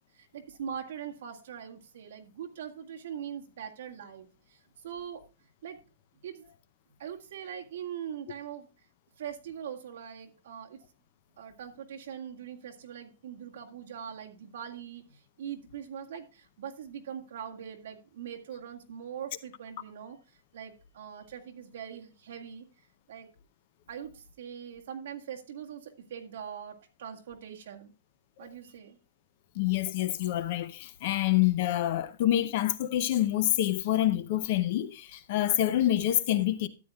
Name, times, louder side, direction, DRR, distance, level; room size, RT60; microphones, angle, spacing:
voice 1, 0.2-4.3 4.8-5.2 5.6-5.8 6.2-6.4 7.0-8.7 9.2-10.8 11.4-15.0 15.4-20.2 20.5-22.7 23.1-23.3 23.9-27.9 28.4-29.0, right 8 dB, 55° right, 1.8 m, -42 dB
voice 2, 29.5-36.7, left 13 dB, 35° left, 0.6 m, -27 dB
13.0 x 9.3 x 2.3 m
hypercardioid pair, 180°, 0 cm